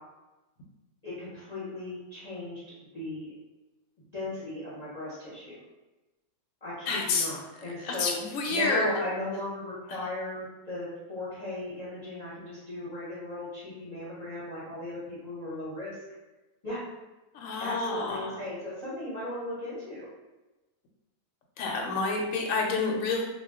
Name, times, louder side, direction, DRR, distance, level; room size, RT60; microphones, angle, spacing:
voice 1, 1.0-2.6 2.9-3.3 4.1-5.6 6.6-8.1 8.5-15.9 16.6-16.8 17.6-20.1, left 1 dB, 35° left, -10 dB, 0.8 m, -37 dB
voice 2, 6.9-7.3 7.8-8.9 17.3-18.4 21.6-23.3, left 3 dB, 70° left, 0 dB, 0.9 m, -28 dB
2.3 x 2.2 x 3.5 m, 1.1 s
omnidirectional pair, 1.6 m